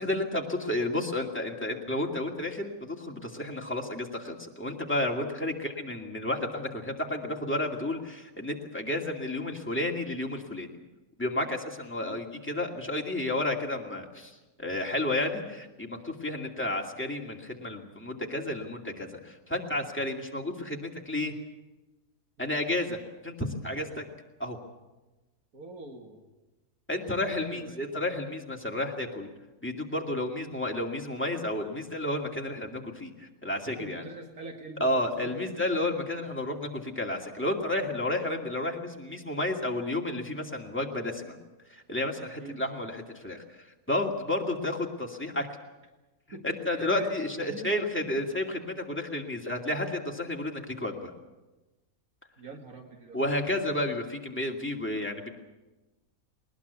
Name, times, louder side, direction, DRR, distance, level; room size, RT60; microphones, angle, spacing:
voice 1, 0.0-10.7 11.2-21.3 22.4-23.0 23.2-24.0 24.4-24.6 26.9-29.3 29.6-34.0 34.8-41.4 41.7-43.4 43.9-45.5 46.4-51.1 53.1-55.3, left 1 dB, 10° left, 0 dB, 2.4 m, -31 dB
voice 2, 25.5-26.2 27.4-27.8 30.4-30.5 33.7-35.4 35.9-36.0 42.4-42.6 46.3-47.1 47.4-47.7 48.0-48.1 48.9-49.0 52.4-53.2, right 3 dB, 85° right, 4 dB, 2.3 m, -45 dB
20.5 x 20.0 x 8.4 m, 1.1 s
omnidirectional pair, 1.5 m